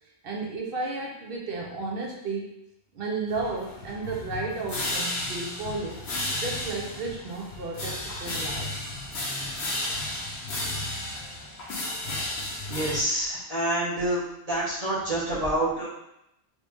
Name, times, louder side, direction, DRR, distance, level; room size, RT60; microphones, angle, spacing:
voice 1, 0.2-2.5 2.9-6.0 6.4-8.7, right 3 dB, 55° right, -1 dB, 0.9 m, -33 dB
sound 1, 3.3-13.0, left 1 dB, 70° left, 1.0 m, -33 dB
voice 2, 12.7-14.2 14.5-15.9, right 1 dB, 35° right, -8 dB, 1.3 m, -27 dB
3.2 x 2.7 x 3.4 m, 0.82 s
omnidirectional pair, 1.2 m